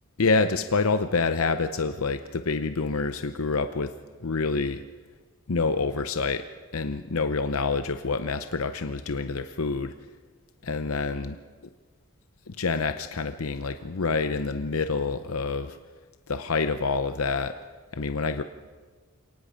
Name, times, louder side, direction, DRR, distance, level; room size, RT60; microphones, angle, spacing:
voice 1, 0.2-3.9 4.2-4.8 5.5-6.4 6.7-9.9 10.6-11.4 12.5-15.8 16.3-17.5 17.9-18.4, left 4 dB, 85° left, 9 dB, 0.7 m, -27 dB
29.0 x 18.5 x 5.2 m, 1.4 s
head